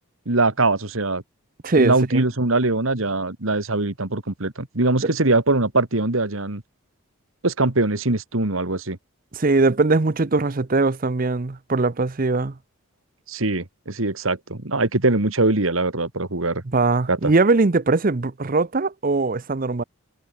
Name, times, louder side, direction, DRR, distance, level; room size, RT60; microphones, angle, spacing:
voice 1, 0.3-1.2 1.8-6.6 7.4-9.0 13.3-16.6 17.1-17.3, right 2 dB, 75° right, 2.1 m, -22 dB
voice 2, 1.6-2.2 5.0-5.1 9.3-12.6 16.6-19.8, right 3 dB, 40° right, 0.7 m, -21 dB
head